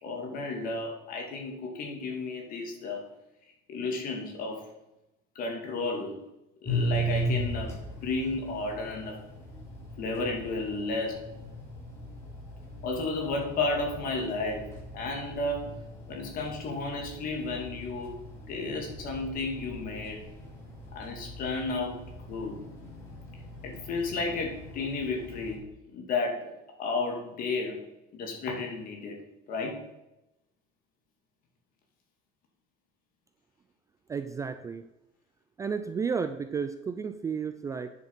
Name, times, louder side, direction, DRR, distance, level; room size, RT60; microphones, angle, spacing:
voice 1, 0.0-3.0 3.7-4.6 5.3-6.2 6.6-9.2 10.0-11.2 12.8-18.2 18.5-20.2 20.9-22.0 22.3-22.6 23.6-25.6 25.9-27.8 28.1-29.2 29.5-29.8, left 3 dB, 45° left, 2 dB, 2.5 m, -33 dB
sound 1, 6.6-25.6, equal, 15° left, 4.0 m, -38 dB
voice 2, 34.1-34.8 35.6-37.9, right 6 dB, 15° right, 9 dB, 0.3 m, -32 dB
9.7 x 7.4 x 5.6 m, 0.92 s
cardioid pair, 170°, 20 cm